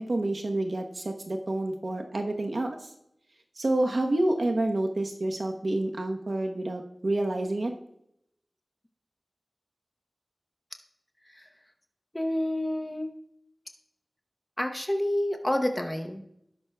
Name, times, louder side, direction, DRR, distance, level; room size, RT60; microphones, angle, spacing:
voice 1, 0.0-2.8 3.6-7.7, right 1 dB, 65° right, 3 dB, 1.0 m, -28 dB
voice 2, 12.1-13.1 14.6-16.2, left 1 dB, 15° left, 4 dB, 0.9 m, -28 dB
18.0 x 6.1 x 2.2 m, 0.77 s
wide cardioid pair, 55°, 0 cm